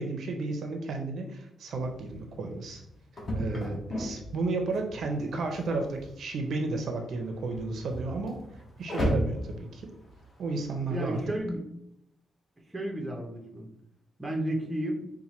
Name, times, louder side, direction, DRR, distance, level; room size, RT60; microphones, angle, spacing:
voice 1, 0.0-2.8 3.3-8.4 8.8-9.8 10.4-11.2, right 3 dB, 55° right, 4 dB, 0.5 m, -33 dB
sound 1, 1.7-11.4, equal, 25° left, 1.0 m, -36 dB
voice 2, 10.9-11.6 12.7-13.7 14.2-15.1, right 1 dB, 15° right, 1 dB, 0.6 m, -32 dB
4.3 x 2.2 x 4.2 m, 0.78 s
wide cardioid pair, 170°, 0 cm